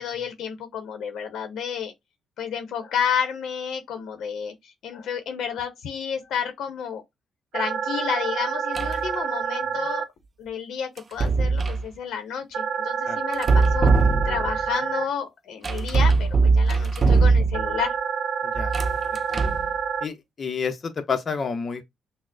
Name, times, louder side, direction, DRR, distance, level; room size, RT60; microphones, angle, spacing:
voice 1, 0.0-1.9 2.4-7.0 7.5-10.0 10.4-13.9 14.2-17.9, left 7 dB, 75° left, 0.7 m, -31 dB
sound 1, 7.5-10.0 12.5-15.0 17.5-20.0, right 7 dB, 75° right, 0.6 m, -28 dB
sound 2, 8.7-9.1 11.0-11.9 13.3-14.6 15.6-17.8 18.6-19.7, right 4 dB, 35° right, 0.4 m, -21 dB
voice 2, 18.4-18.7 19.1-19.6 20.0-21.8, left 5 dB, 40° left, 0.6 m, -30 dB
5.8 x 2.0 x 2.5 m
cardioid pair, 90°, 0 cm